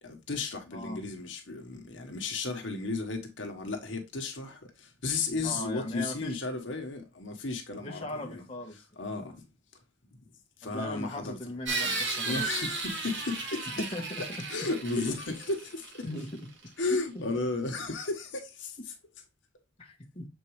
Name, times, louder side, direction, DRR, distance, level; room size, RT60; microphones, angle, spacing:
voice 1, 0.0-8.4 9.0-9.4 10.2-10.3 10.6-12.0 12.2-13.8 14.5-16.1 16.8-18.9, left 3 dB, 70° left, 1.2 m, -34 dB
voice 2, 5.4-6.4 7.8-8.8 10.7-12.5 13.8-14.2 16.0-16.3 16.9-17.2 19.8-20.2, left 1 dB, 30° left, 1.1 m, -38 dB
sound 1, 11.6-16.4, right 3 dB, 70° right, 1.8 m, -34 dB
7.1 x 4.5 x 3.1 m
head